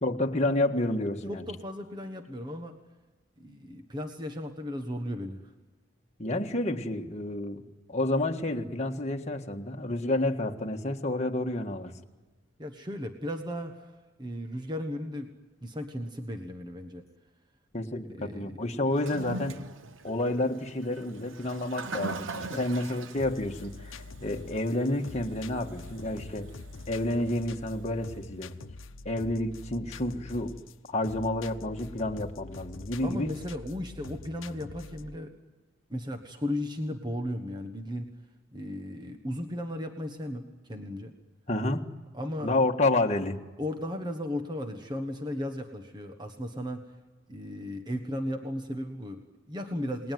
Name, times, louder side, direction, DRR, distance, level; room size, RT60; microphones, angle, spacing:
voice 1, 0.0-1.4 6.2-11.9 17.7-19.6 20.0-26.5 26.9-28.5 29.0-30.6 30.9-33.3 41.5-41.9 42.4-43.4, left 1 dB, 35° left, 2 dB, 1.6 m, -30 dB
voice 2, 1.3-2.7 3.4-5.5 12.6-13.9 14.2-15.3 15.6-17.0 18.1-18.8 22.5-22.6 33.0-35.3 35.9-38.1 38.5-41.1 42.1-42.5 43.6-46.8 47.3-50.1, left 1 dB, 20° right, 5 dB, 1.4 m, -35 dB
Toilet flush, 18.9-28.2, right 3 dB, 85° right, 1.0 m, -43 dB
sound 1, 23.2-35.2, left 3 dB, 90° left, 0.9 m, -45 dB
29.5 x 20.0 x 9.4 m, 1.3 s
head